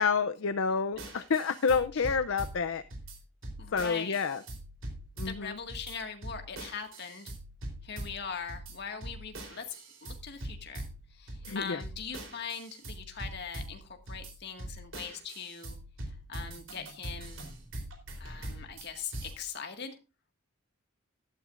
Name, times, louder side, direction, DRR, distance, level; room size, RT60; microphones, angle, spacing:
voice 1, 0.0-2.8 3.7-4.4 5.2-5.6 11.4-11.8, left 5 dB, 70° left, 11 dB, 0.5 m, -29 dB
sound 1, 0.9-19.3, right 1 dB, 70° right, 3.6 m, -43 dB
voice 2, 3.6-4.2 5.2-7.3 7.8-9.6 10.0-15.8 16.1-17.5 18.2-19.9, left 6 dB, 50° left, 5 dB, 1.8 m, -41 dB
13.5 x 12.5 x 2.5 m, 0.29 s
head